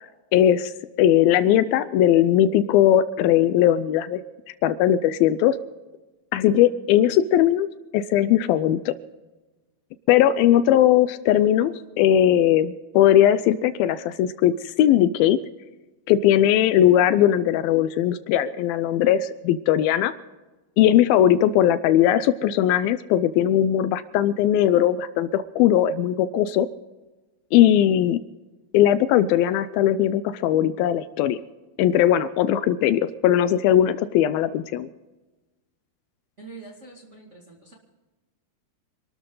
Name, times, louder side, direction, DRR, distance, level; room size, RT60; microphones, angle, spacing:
voice 1, 0.3-0.7 1.0-4.2 4.6-5.6 6.3-7.7 7.9-8.9 10.1-15.4 16.1-20.1 20.8-26.7 27.5-28.2 28.7-31.4 31.8-34.9, left 11 dB, 80° left, 14 dB, 2.3 m, -19 dB
voice 2, 36.4-37.7, right 3 dB, 25° right, -2 dB, 1.7 m, -44 dB
26.5 x 13.0 x 3.9 m, 1.2 s
omnidirectional pair, 4.4 m